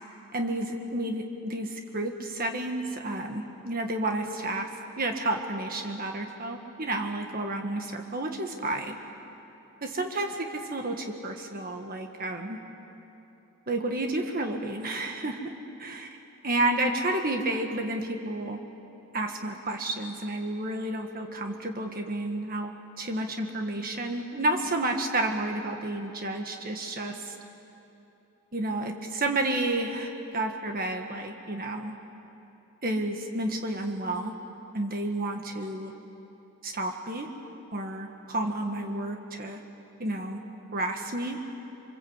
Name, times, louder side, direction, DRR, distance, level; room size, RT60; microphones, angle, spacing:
voice 1, 0.3-4.7 5.0-9.0 9.8-12.6 13.7-15.4 15.8-16.2 16.4-18.6 19.1-22.7 23.0-27.3 28.5-31.9 32.8-34.3 34.7-35.9 36.6-37.3 37.7-39.6 40.0-40.4 40.7-41.4, right 2 dB, 40° right, 4 dB, 1.6 m, -31 dB
28.0 x 24.0 x 8.1 m, 3.0 s
head